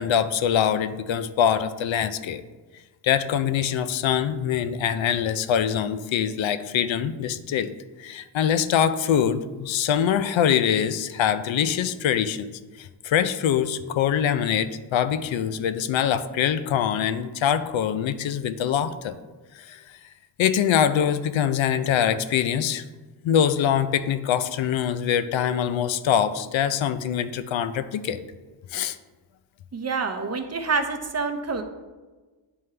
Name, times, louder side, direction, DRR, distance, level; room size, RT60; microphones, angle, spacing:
voice 1, 0.0-2.4 3.0-12.5 12.8-19.1 19.5-20.0 20.4-22.8 23.2-28.2 28.7-29.0, left 9 dB, 75° left, 12 dB, 0.5 m, -24 dB
voice 2, 29.7-31.6, right 4 dB, 35° right, 6 dB, 0.7 m, -27 dB
9.3 x 3.6 x 3.3 m, 1.3 s
cardioid pair, 85°, 46 cm